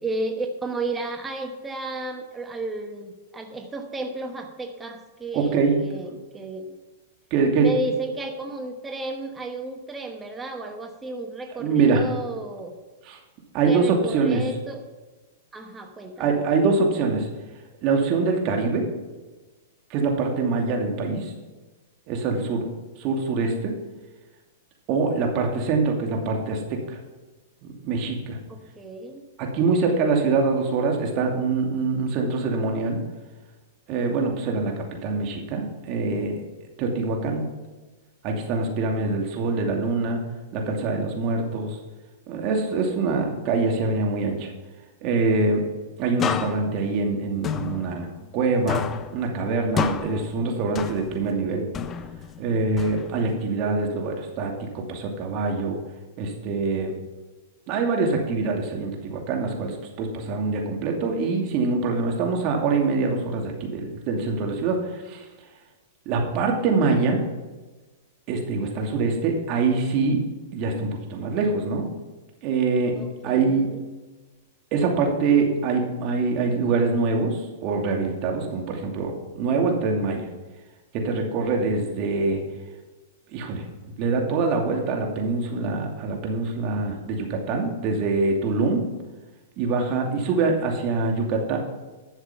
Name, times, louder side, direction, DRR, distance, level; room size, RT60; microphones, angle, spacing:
voice 1, 0.0-6.8 7.6-12.7 13.7-14.8 15.5-16.4 28.5-29.2 29.9-30.3 73.0-73.8, right 2 dB, 15° right, 4 dB, 1.2 m, -33 dB
voice 2, 5.3-5.7 7.3-7.7 11.6-12.0 13.0-13.2 13.5-14.4 16.2-17.3 17.8-18.9 19.9-21.3 22.1-22.7 23.0-23.7 24.9-27.0 27.6-28.4 29.4-33.0 33.9-36.4 36.8-37.4 38.2-40.2 40.5-41.8 42.3-44.5 45.0-45.6 46.0-48.1 48.3-48.8 49.1-51.7 52.4-55.8 56.2-56.9 57.7-65.2 66.1-67.2 68.3-70.2 70.5-71.9 72.4-73.0 73.2-73.7 74.7-80.3 80.9-82.4 83.3-83.6 84.0-88.8 89.6-91.6, right 4 dB, 45° right, 1 dB, 2.6 m, -24 dB
sound 1, 46.2-48.4 48.7-51.4 51.7-53.4, left 7 dB, 25° left, 0.6 m, -31 dB
11.5 x 7.2 x 5.6 m, 1.2 s
hypercardioid pair, 120°, 0 cm